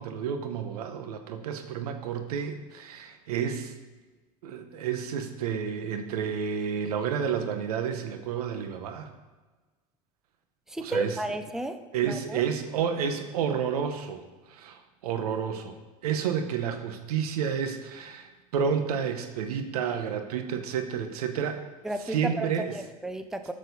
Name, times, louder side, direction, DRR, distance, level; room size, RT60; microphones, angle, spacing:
voice 1, 0.0-3.7 4.4-9.1 10.8-11.2 11.9-14.2 14.5-15.8 16.0-21.6 22.0-22.7, right 7 dB, 90° right, 7 dB, 1.0 m, -30 dB
voice 2, 10.7-11.8 12.0-12.4 21.8-23.5, right 1 dB, 5° right, 9 dB, 0.6 m, -33 dB
8.2 x 6.6 x 5.4 m, 1.3 s
supercardioid pair, 105°, 19 cm